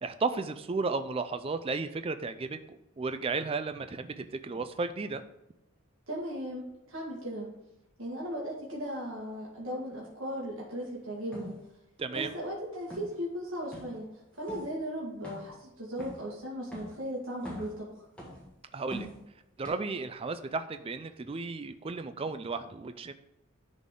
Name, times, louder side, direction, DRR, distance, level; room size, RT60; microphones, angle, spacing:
voice 1, 0.0-5.2 12.0-12.3 18.7-19.1 19.6-23.1, right 4 dB, 25° right, 10 dB, 0.3 m, -34 dB
voice 2, 6.1-7.5 8.0-11.6 12.1-18.0, equal, 70° right, -5 dB, 1.8 m, -37 dB
sound 1, 11.3-11.5 12.1-12.5 12.8-13.1 13.7-14.0 14.5-14.7 15.2-15.6 16.0-16.3 16.7-17.0 17.4-17.8 18.2-18.5 18.9-19.2 19.6-19.7, equal, 5° left, 1.8 m, -43 dB
11.0 x 4.1 x 3.7 m, 0.89 s
head